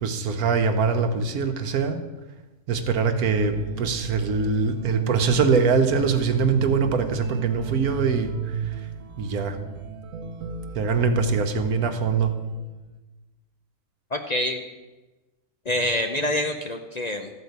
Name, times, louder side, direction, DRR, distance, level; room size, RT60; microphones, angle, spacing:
voice 1, 0.0-2.0 2.7-8.9 9.2-9.6 10.7-12.3, right 5 dB, 85° right, 7 dB, 1.4 m, -23 dB
sound 1, 3.3-12.9, right 8 dB, 65° right, 1.1 m, -34 dB
voice 2, 14.1-14.6 15.6-17.3, left 1 dB, 40° left, 4 dB, 0.6 m, -26 dB
13.0 x 5.0 x 8.0 m, 1.1 s
omnidirectional pair, 1.5 m